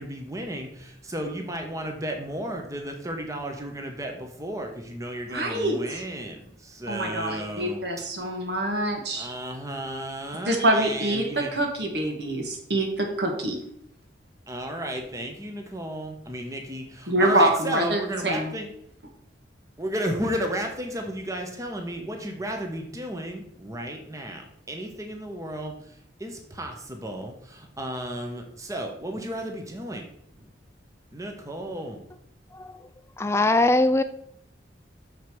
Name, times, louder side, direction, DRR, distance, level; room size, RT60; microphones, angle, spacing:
voice 1, 0.0-7.8 9.1-11.5 14.5-18.7 19.8-25.7 26.2-30.1 30.4-30.5 31.1-32.0, right 1 dB, 15° right, 3 dB, 1.1 m, -33 dB
voice 2, 5.3-6.0 6.9-9.3 10.5-13.6 17.1-18.5, right 1 dB, 60° right, 3 dB, 1.7 m, -25 dB
voice 3, 33.2-34.0, left 2 dB, 15° left, 10 dB, 0.4 m, -21 dB
6.5 x 5.2 x 6.1 m, 0.72 s
head